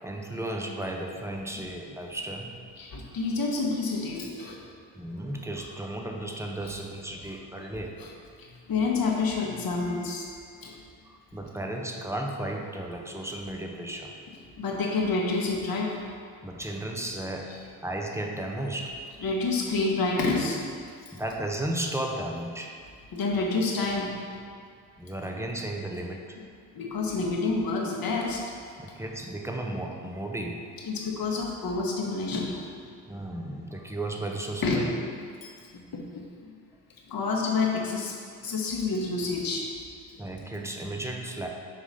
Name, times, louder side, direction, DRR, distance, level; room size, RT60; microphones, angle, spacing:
voice 1, 0.0-2.5 4.9-8.0 11.0-14.1 16.4-19.0 21.1-22.8 25.0-26.4 28.8-30.7 33.1-34.9 40.2-41.5, right 1 dB, 5° right, 1 dB, 1.0 m, -34 dB
voice 2, 2.8-4.6 8.0-8.1 8.4-10.3 10.6-10.7 14.6-16.0 19.2-20.6 23.1-24.1 26.7-28.4 30.8-32.7 34.6-34.8 35.4-36.5 37.1-38.1 38.4-39.7, left 3 dB, 50° left, -1 dB, 1.5 m, -28 dB
5.6 x 4.7 x 5.7 m, 2.1 s
hypercardioid pair, 50°, 46 cm